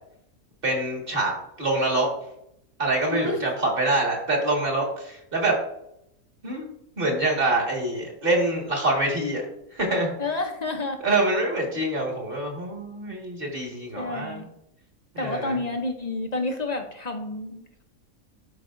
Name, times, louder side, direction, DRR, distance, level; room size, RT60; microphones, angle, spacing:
voice 1, 0.6-2.1 2.8-5.6 6.4-6.7 7.0-9.4 9.7-10.1 11.0-14.4 15.1-15.6, right 2 dB, 40° right, -1 dB, 1.9 m, -25 dB
voice 2, 3.1-3.5 10.2-11.0 14.0-14.5 15.2-17.8, left 2 dB, 40° left, 5 dB, 0.6 m, -29 dB
12.0 x 5.1 x 2.5 m, 0.79 s
omnidirectional pair, 1.5 m